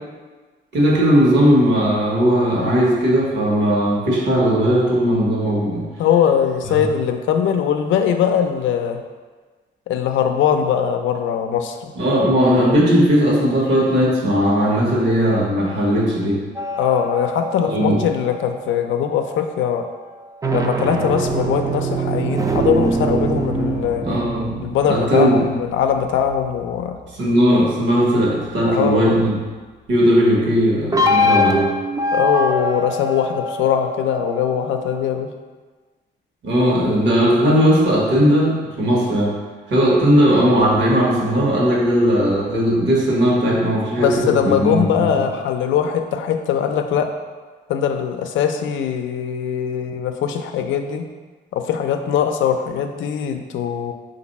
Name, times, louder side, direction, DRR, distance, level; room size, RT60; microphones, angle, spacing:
voice 1, 0.7-5.9 6.7-6.8 11.9-16.4 17.6-18.0 24.0-24.6 24.9-25.5 27.2-29.4 29.9-31.7 36.4-39.4 39.7-45.2, equal, 70° right, -3 dB, 1.2 m, -17 dB
voice 2, 6.0-9.0 9.9-11.9 16.8-19.9 20.5-24.1 24.6-27.0 28.6-29.2 32.1-35.3 44.0-47.1 47.7-51.1 51.5-53.9, left 8 dB, 90° left, 6 dB, 0.4 m, -21 dB
sound 1, 16.5-19.2 20.2-27.1 30.9-35.1, equal, 20° right, 0.4 m, -23 dB
4.4 x 2.6 x 4.0 m, 1.4 s
cardioid pair, 115°, 19 cm